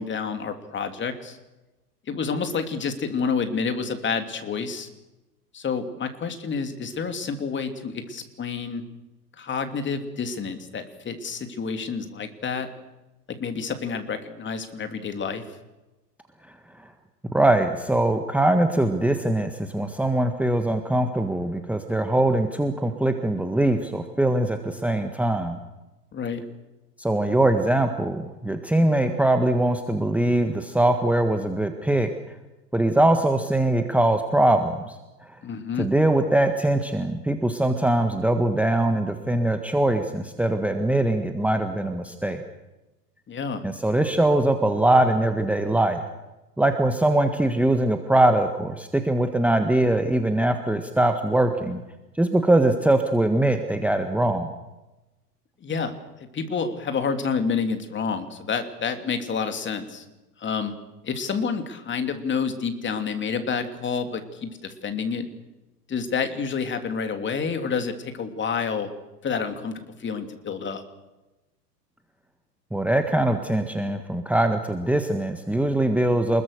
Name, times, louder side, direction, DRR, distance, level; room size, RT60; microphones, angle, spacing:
voice 1, 0.0-1.4 2.1-4.9 5.5-8.8 9.4-12.7 13.3-15.4 26.1-26.4 35.4-35.9 43.3-43.6 55.6-55.9 56.3-60.0 60.4-60.7 61.0-65.3 65.9-68.9 69.2-70.8, left 5 dB, 25° left, 7 dB, 3.0 m, -29 dB
voice 2, 16.5-16.9 17.3-25.6 27.0-32.1 32.7-35.0 35.2-35.4 35.8-42.4 43.6-46.0 46.6-51.8 52.1-54.5 72.7-76.4, right 1 dB, 5° right, 6 dB, 1.6 m, -22 dB
29.0 x 21.5 x 6.7 m, 1.0 s
hypercardioid pair, 95°, 49 cm